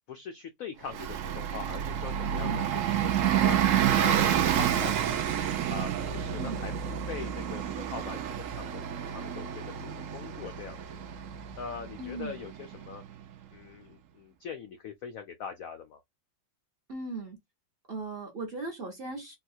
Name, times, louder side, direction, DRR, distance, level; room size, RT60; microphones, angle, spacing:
voice 1, 0.1-2.7 3.0-3.1 3.4-5.4 5.7-8.9 9.1-11.0 11.6-13.0 13.5-16.0, left 6 dB, 85° left, 0.7 m, -42 dB
Bus, 0.9-13.2, right 9 dB, 80° right, 0.7 m, -29 dB
voice 2, 2.4-2.8 6.3-6.7 12.0-12.5 16.9-17.4 17.9-19.4, right 2 dB, 45° right, 0.8 m, -38 dB
4.0 x 2.3 x 2.6 m
omnidirectional pair, 2.1 m